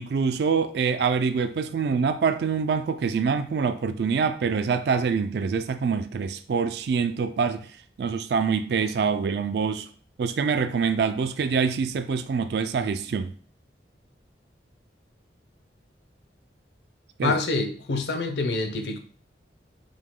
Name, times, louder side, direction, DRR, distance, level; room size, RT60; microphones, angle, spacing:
voice 1, 0.0-7.7 8.0-9.9 10.2-13.3 17.2-17.3, right 5 dB, 65° right, 0.3 m, -25 dB
voice 2, 17.2-19.0, left 3 dB, 70° left, 0.6 m, -26 dB
4.9 x 2.2 x 3.6 m
head